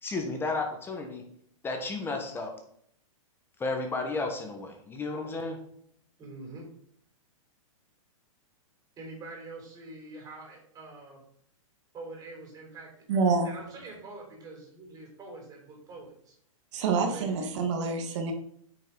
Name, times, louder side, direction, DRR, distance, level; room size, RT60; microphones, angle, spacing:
voice 1, 0.0-1.2 1.6-2.5 3.6-5.6, left 3 dB, 10° left, 3 dB, 1.2 m, -33 dB
voice 2, 6.2-6.6 9.0-11.2 11.9-12.9 13.4-16.4 17.0-17.6, right 3 dB, 20° right, -1 dB, 3.4 m, -45 dB
voice 3, 13.1-13.5 16.7-18.3, right 4 dB, 55° right, 4 dB, 1.6 m, -27 dB
9.0 x 5.5 x 3.9 m, 0.66 s
hypercardioid pair, 140°, 18 cm